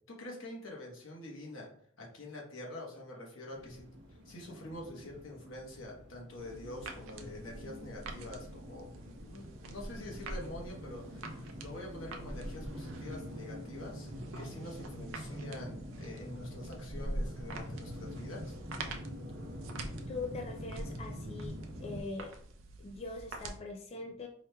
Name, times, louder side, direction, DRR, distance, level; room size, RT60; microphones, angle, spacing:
voice 1, 0.1-1.7 2.0-3.8 4.2-8.9 9.2-14.1 14.3-18.6, left 1 dB, 85° left, -1 dB, 1.0 m, -46 dB
sound 1, 3.5-22.0, equal, 60° right, 0.8 m, -44 dB
sound 2, 6.3-23.6, right 3 dB, 80° right, 0.5 m, -49 dB
voice 2, 20.1-22.3 22.8-24.3, left 3 dB, 30° left, 2 dB, 0.3 m, -42 dB
4.7 x 3.0 x 2.2 m, 0.63 s
head